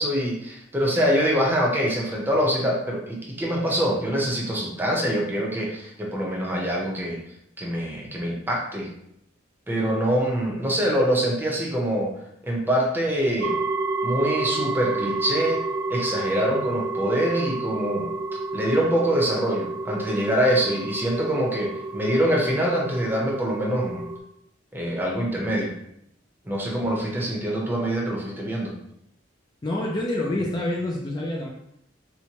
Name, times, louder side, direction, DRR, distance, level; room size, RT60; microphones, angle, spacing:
voice 1, 0.0-7.2 7.6-8.9 9.7-12.1 12.4-13.6 14.0-15.6 15.9-18.1 18.5-24.0 24.7-25.7 26.5-28.7, equal, 10° right, -2 dB, 0.7 m, -24 dB
sound 1, 13.4-24.2, right 3 dB, 85° right, 0.4 m, -30 dB
voice 2, 29.6-31.5, left 1 dB, 20° left, -2 dB, 0.4 m, -27 dB
4.4 x 2.1 x 2.8 m, 0.77 s
head